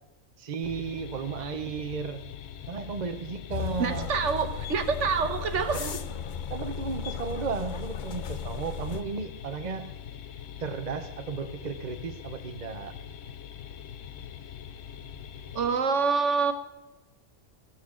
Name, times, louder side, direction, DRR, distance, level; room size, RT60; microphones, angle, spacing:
voice 1, 0.4-2.2 2.7-4.1 5.7-6.0 6.5-10.0 10.6-13.0, right 5 dB, 40° right, 8 dB, 0.8 m, -34 dB
sound 1, 0.6-15.8, left 8 dB, 80° left, 1.1 m, -43 dB
sound 2, 3.5-9.0, left 8 dB, 50° left, 0.6 m, -36 dB
voice 2, 3.8-5.9 15.5-16.5, right 5 dB, 70° right, 8 dB, 1.4 m, -26 dB
14.5 x 13.5 x 3.8 m, 0.99 s
omnidirectional pair, 1.3 m